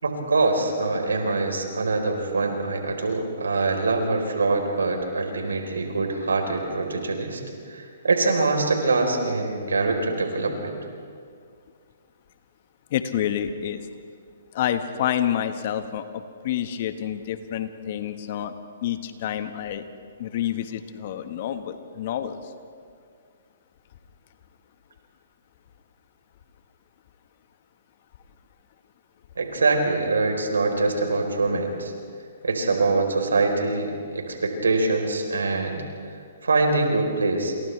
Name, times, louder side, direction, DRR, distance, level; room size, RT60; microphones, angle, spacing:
voice 1, 0.0-7.4 7.7-10.7 29.4-31.9 32.4-35.8 36.4-37.5, right 3 dB, 85° right, 3 dB, 4.1 m, -24 dB
voice 2, 12.9-13.8 14.5-18.5 18.8-19.8 20.2-22.4, left 10 dB, 50° left, 9 dB, 1.5 m, -28 dB
28.5 x 28.0 x 3.4 m, 2.2 s
hypercardioid pair, 135°, 0 cm